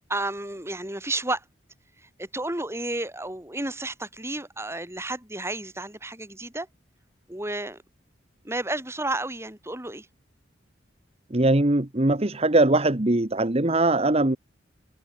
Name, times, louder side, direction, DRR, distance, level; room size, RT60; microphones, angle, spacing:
voice 1, 0.1-1.4 2.2-6.7 7.3-7.8 8.4-10.1, right 2 dB, 15° right, 6.2 m, -31 dB
voice 2, 11.3-14.4, right 2 dB, 30° right, 1.3 m, -21 dB
head